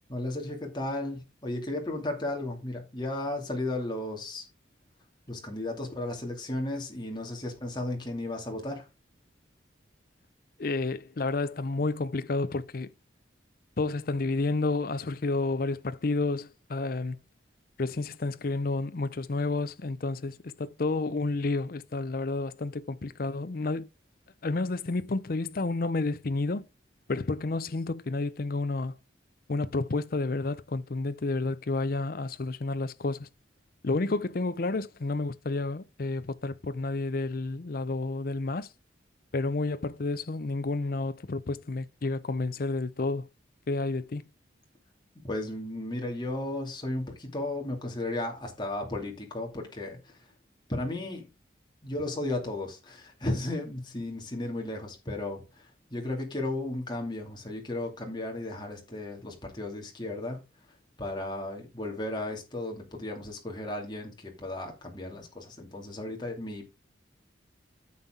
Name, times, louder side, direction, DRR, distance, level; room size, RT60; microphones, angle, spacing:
voice 1, 0.1-4.5 5.3-8.9 45.2-50.3 50.7-51.3 51.8-60.4 61.0-66.7, left 1 dB, 25° left, 2.5 m, -34 dB
voice 2, 10.6-12.9 13.8-17.2 17.8-23.9 24.4-26.6 27.1-28.9 29.5-33.3 33.8-38.7 39.3-43.3 43.7-44.2, left 3 dB, 50° left, 0.6 m, -30 dB
9.4 x 7.2 x 3.7 m
head